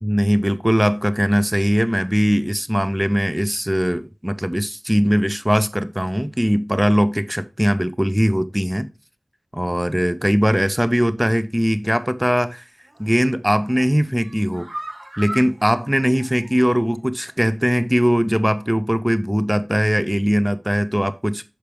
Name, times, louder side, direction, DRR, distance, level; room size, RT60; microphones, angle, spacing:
voice 1, 0.0-8.9 9.5-12.6 13.0-14.7 15.2-21.4, equal, 10° right, 0.5 m, -20 dB
sound 1, 12.8-13.2 13.6-17.0 17.3-17.4 17.8-17.9, right 1 dB, 45° right, 1.4 m, -38 dB
6.8 x 5.7 x 3.3 m
wide cardioid pair, 45°, 0 cm